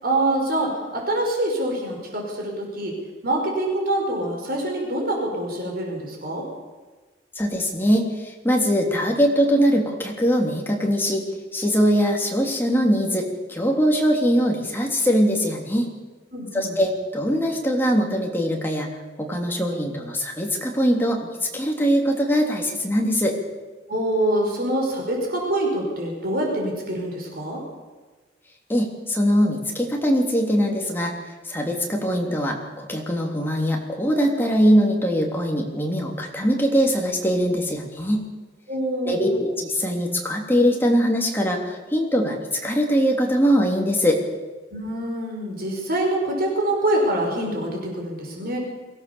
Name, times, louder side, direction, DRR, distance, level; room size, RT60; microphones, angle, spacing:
voice 1, 0.0-2.9 3.2-6.4 16.3-16.8 23.9-27.6 38.7-39.4 44.7-48.6, right 1 dB, 50° right, 0 dB, 5.2 m, -25 dB
voice 2, 7.3-11.2 11.5-15.9 16.5-18.9 19.2-23.4 28.7-31.1 31.5-38.2 39.0-44.2, equal, 10° left, 0 dB, 3.2 m, -22 dB
23.0 x 16.0 x 7.1 m, 1.3 s
head